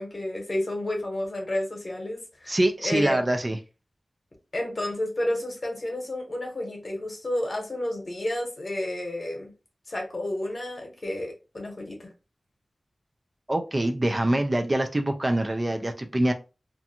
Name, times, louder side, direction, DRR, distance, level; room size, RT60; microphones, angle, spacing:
voice 1, 0.0-2.6 2.8-3.2 4.5-9.5 9.9-12.1, left 1 dB, 45° left, 0.9 m, -31 dB
voice 2, 2.5-3.6 13.5-16.3, right 1 dB, 25° right, 0.3 m, -24 dB
2.5 x 2.3 x 2.7 m
wide cardioid pair, 90°, 0 cm